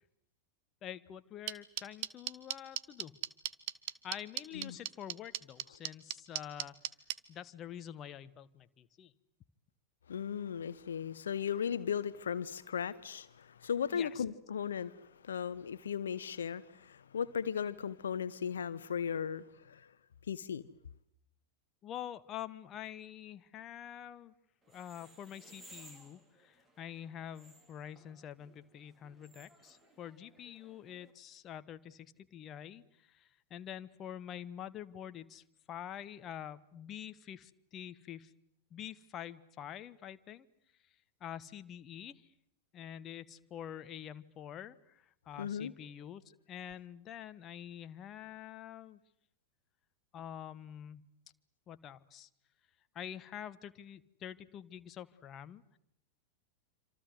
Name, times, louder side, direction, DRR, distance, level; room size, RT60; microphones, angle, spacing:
voice 1, 0.8-3.2 4.0-6.8 7.3-9.1 13.9-14.2 21.8-24.3 24.7-38.3 38.7-40.5 41.2-42.3 42.7-49.0 50.1-51.1 51.7-52.3 52.9-55.8, left 10 dB, 30° left, 1.3 m, -46 dB
sound 1, 1.5-7.1, right 16 dB, 45° right, 1.4 m, -36 dB
voice 2, 10.1-19.9 20.3-20.6 45.4-45.7, left 7 dB, 65° left, 1.0 m, -37 dB
sound 2, 24.6-31.1, right 2 dB, 15° right, 4.8 m, -60 dB
27.0 x 27.0 x 8.0 m
figure-of-eight pair, 90°, 0 cm